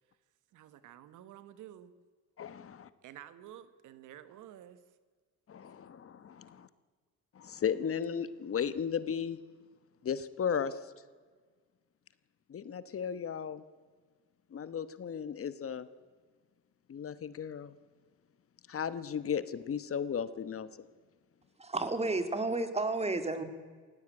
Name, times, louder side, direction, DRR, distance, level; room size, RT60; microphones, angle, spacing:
voice 1, 0.5-1.9 3.0-4.8, right 11 dB, 85° right, 14 dB, 1.3 m, -51 dB
voice 2, 2.4-2.9 5.5-6.7 7.3-9.4 10.0-10.9 12.5-13.6 14.5-15.9 16.9-17.8 18.7-20.9, left 7 dB, 50° left, 14 dB, 1.2 m, -35 dB
voice 3, 21.6-23.4, right 2 dB, 20° right, 9 dB, 2.5 m, -31 dB
18.5 x 16.0 x 8.9 m, 1.5 s
cardioid pair, 90°, 30 cm